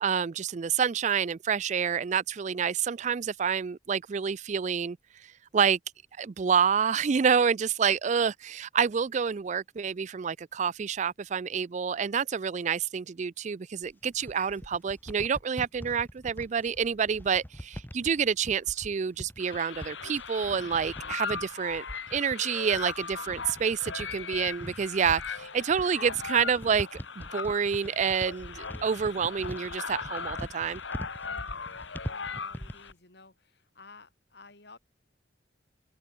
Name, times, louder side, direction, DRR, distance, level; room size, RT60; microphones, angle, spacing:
voice 1, 0.0-5.0 5.5-5.8 6.2-21.8 22.1-30.8, right 7 dB, 40° right, 0.4 m, -28 dB
sound 1, 13.8-32.9, equal, 10° left, 2.0 m, -43 dB
sound 2, 19.4-32.9, left 5 dB, 80° left, 1.9 m, -39 dB
voice 2, 31.2-31.8 32.1-34.8, left 3 dB, 60° left, 4.5 m, -54 dB
open air
head